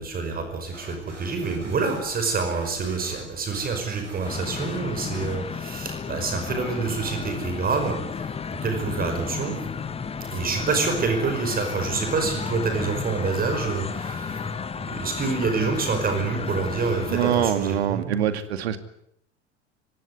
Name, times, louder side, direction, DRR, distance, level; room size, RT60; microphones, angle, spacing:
voice 1, 0.0-9.6 10.3-18.3, right 4 dB, 25° right, 6 dB, 5.3 m, -27 dB
sound 1, 0.7-5.9, right 2 dB, 85° right, 4.6 m, -45 dB
sound 2, 4.2-17.5, left 6 dB, 15° left, 1.6 m, -33 dB
voice 2, 17.1-18.8, right 10 dB, 60° right, 11 dB, 2.3 m, -24 dB
24.5 x 18.0 x 9.7 m, 0.76 s
figure-of-eight pair, 80°, 35 cm